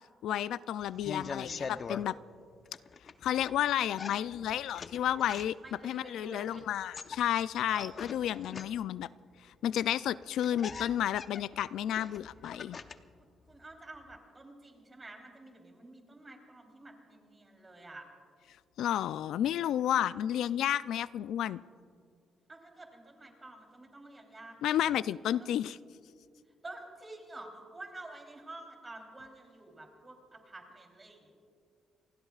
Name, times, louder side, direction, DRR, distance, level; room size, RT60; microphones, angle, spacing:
voice 1, 0.2-2.2 3.2-5.6 5.8-9.1 9.6-12.8 18.8-21.6 24.6-25.8, left 11 dB, 80° left, 17 dB, 0.3 m, -31 dB
sound 1, 0.8-2.1 2.7-3.6 3.9-5.8 6.7-9.0 9.9-10.0 10.2-13.1 13.5-14.2, left 5 dB, 45° left, 0.7 m, -43 dB
voice 2, 5.6-6.6 7.6-8.2 12.5-12.8 13.5-18.0 22.5-24.8 25.4-25.6 26.6-31.3, right 2 dB, 25° right, 2 dB, 3.4 m, -49 dB
29.0 x 20.0 x 2.4 m, 2.3 s
cardioid pair, 90°, 0 cm